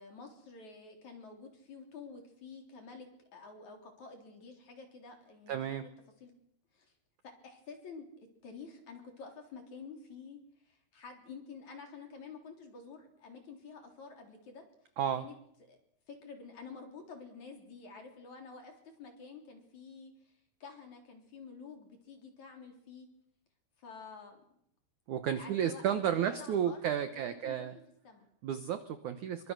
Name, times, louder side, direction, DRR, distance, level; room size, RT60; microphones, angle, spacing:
voice 1, 0.0-5.9 6.2-6.3 6.7-6.9 7.2-14.6 15.2-15.3 15.7-15.8 16.1-23.1 23.8-24.4 25.3-26.8 27.1-27.7 28.0-28.3, left 4 dB, 45° left, 3 dB, 4.5 m, -50 dB
voice 2, 5.5-5.8 15.0-15.2 25.1-27.7 28.4-29.5, right 9 dB, 80° right, 10 dB, 1.7 m, -32 dB
27.5 x 23.5 x 6.3 m, 0.71 s
omnidirectional pair, 5.1 m